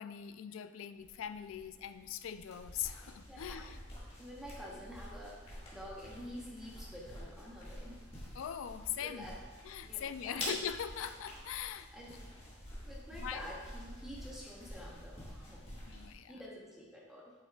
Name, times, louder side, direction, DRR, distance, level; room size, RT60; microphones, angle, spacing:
voice 1, 0.0-3.8 8.3-9.3 9.6-11.9 13.2-13.4 15.9-16.4, left 9 dB, 70° left, 11 dB, 0.3 m, -41 dB
sound 1, 1.0-16.1, left 1 dB, 25° left, 1.7 m, -48 dB
voice 2, 3.3-3.7 4.2-8.1 9.0-9.4 9.8-10.4 11.9-12.3 12.8-15.8 16.3-17.3, equal, ahead, -5 dB, 1.0 m, -49 dB
8.6 x 6.0 x 2.4 m, 1.3 s
head